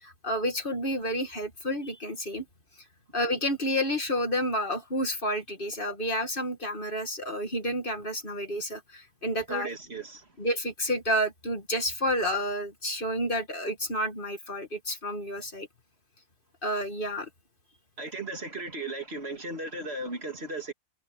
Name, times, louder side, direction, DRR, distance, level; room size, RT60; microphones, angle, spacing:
voice 1, 0.0-2.4 3.1-9.7 10.4-15.7 16.6-17.3, equal, 40° left, 2.4 m, -30 dB
voice 2, 9.5-10.3 18.0-20.7, right 2 dB, 50° right, 2.6 m, -36 dB
omnidirectional pair, 1.4 m